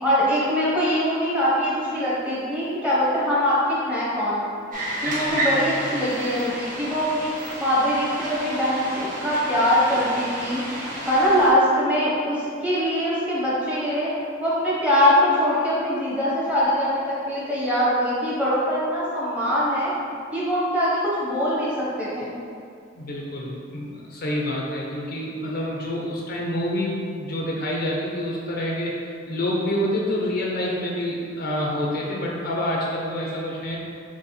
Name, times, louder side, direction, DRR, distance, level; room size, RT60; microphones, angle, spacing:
voice 1, 0.0-4.5 5.0-7.3 7.6-10.6 11.1-14.1 14.4-19.9 20.3-21.7 22.0-22.3, equal, 5° right, -8 dB, 1.0 m, -22 dB
sound 1, 4.7-11.5, right 1 dB, 40° right, 0.8 m, -30 dB
voice 2, 5.1-5.8 23.0-33.8, left 1 dB, 50° left, -3 dB, 0.5 m, -27 dB
4.7 x 2.9 x 3.2 m, 2.3 s
head